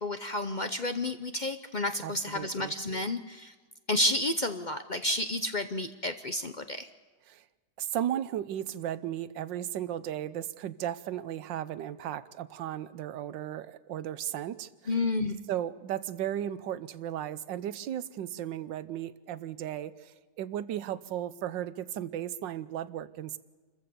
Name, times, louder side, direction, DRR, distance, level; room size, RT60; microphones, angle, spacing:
voice 1, 0.0-3.5 3.9-6.9 14.9-15.4, left 1 dB, 50° left, 9 dB, 0.5 m, -31 dB
voice 2, 2.0-2.7 7.3-7.4 7.8-14.7 15.5-23.4, right 11 dB, 85° right, 15 dB, 1.5 m, -35 dB
28.0 x 14.5 x 6.9 m, 1.4 s
omnidirectional pair, 1.9 m